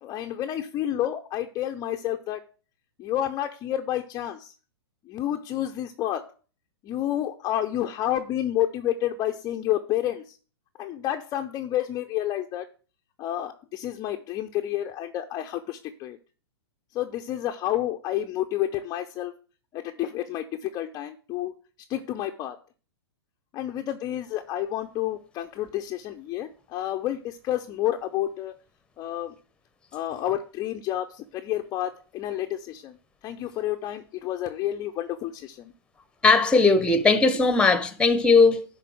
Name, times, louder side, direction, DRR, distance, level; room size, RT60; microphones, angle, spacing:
voice 1, 0.0-2.4 3.0-4.5 5.1-6.3 6.8-10.4 10.8-12.7 13.2-16.2 16.9-19.3 19.7-21.5 21.9-22.6 23.5-28.5 29.0-29.3 29.9-33.0 33.2-35.7, left 12 dB, 25° left, 0.6 m, -30 dB
voice 2, 36.2-38.7, left 4 dB, 5° left, 1.0 m, -18 dB
11.0 x 3.9 x 6.4 m
hypercardioid pair, 120°, 14 cm